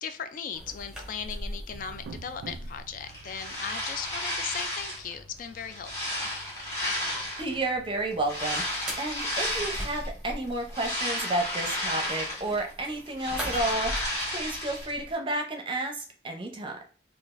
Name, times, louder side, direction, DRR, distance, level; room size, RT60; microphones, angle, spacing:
voice 1, 0.0-6.3, left 7 dB, 50° left, 9 dB, 0.3 m, -38 dB
sound 1, 0.5-15.1, equal, 5° right, 0.8 m, -43 dB
sound 2, 1.7-8.2, right 4 dB, 80° right, 0.4 m, -50 dB
sound 3, 3.1-5.1 5.5-7.6 8.2-10.1 10.5-12.7 13.0-14.9, left 1 dB, 20° left, 1.3 m, -32 dB
voice 2, 7.4-13.9 14.3-16.8, right 2 dB, 30° right, 3 dB, 0.6 m, -31 dB
3.8 x 2.3 x 2.5 m, 0.39 s
head